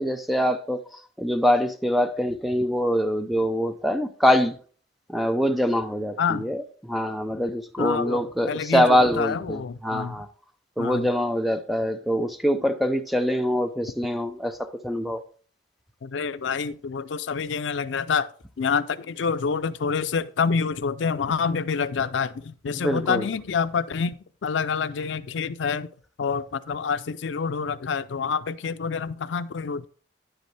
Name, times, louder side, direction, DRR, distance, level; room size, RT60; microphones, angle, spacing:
voice 1, 0.0-4.6 5.1-10.3 10.8-15.2 22.7-23.3, equal, ahead, 0.6 m, -24 dB
voice 2, 6.2-6.5 7.8-10.2 10.8-11.1 16.0-18.3 18.6-25.9 26.2-29.9, left 5 dB, 85° left, 0.4 m, -27 dB
10.0 x 8.0 x 3.3 m
head